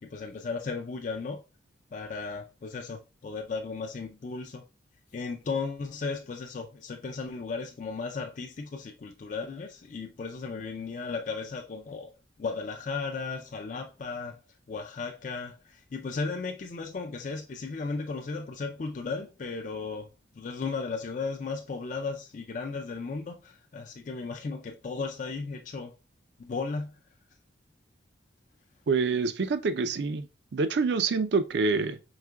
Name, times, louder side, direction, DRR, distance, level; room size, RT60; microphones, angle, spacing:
voice 1, 0.0-1.4 1.9-4.6 5.1-12.1 12.4-14.4 14.7-20.1 20.4-25.9 26.4-27.0, left 4 dB, 40° left, 0.4 m, -35 dB
voice 2, 28.9-30.3 30.5-32.0, right 4 dB, 60° right, 0.4 m, -26 dB
4.8 x 3.6 x 2.2 m
head